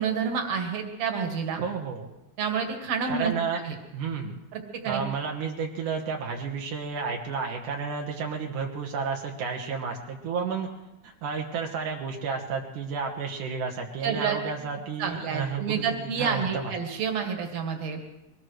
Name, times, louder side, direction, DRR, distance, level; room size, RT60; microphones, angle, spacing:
voice 1, 0.0-1.6 2.4-3.8 4.5-5.0 14.0-14.4 15.0-18.0, right 6 dB, 65° right, 3 dB, 3.0 m, -29 dB
voice 2, 1.6-2.1 3.1-3.6 3.9-4.4 4.8-10.7 11.0-16.7, right 5 dB, 85° right, 0 dB, 2.8 m, -31 dB
23.0 x 19.0 x 3.2 m, 0.99 s
omnidirectional pair, 3.5 m